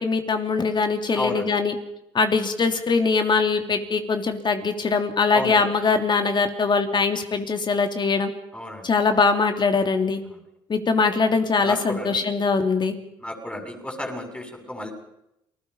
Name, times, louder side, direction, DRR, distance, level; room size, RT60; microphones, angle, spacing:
voice 1, 0.0-1.7 2.1-8.3 8.8-10.2 10.7-12.9, left 4 dB, 40° left, 6 dB, 3.3 m, -22 dB
voice 2, 1.1-1.5 5.3-5.6 8.5-8.9 11.6-12.2 13.2-14.9, left 1 dB, 10° left, 3 dB, 7.9 m, -31 dB
29.5 x 20.5 x 5.7 m, 0.82 s
supercardioid pair, 65°, 12 cm